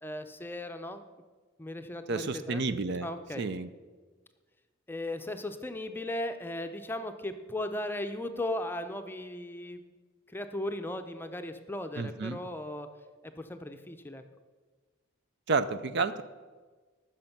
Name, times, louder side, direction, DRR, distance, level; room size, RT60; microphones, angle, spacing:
voice 1, 0.0-1.0 1.6-2.6 3.0-3.5 4.9-9.8 10.3-12.9 13.2-14.2, left 1 dB, 10° left, 7 dB, 0.6 m, -37 dB
voice 2, 2.1-3.1 3.4-3.7 12.0-12.4 15.5-16.2, right 4 dB, 55° right, 13 dB, 0.5 m, -30 dB
14.5 x 6.3 x 5.9 m, 1.4 s
head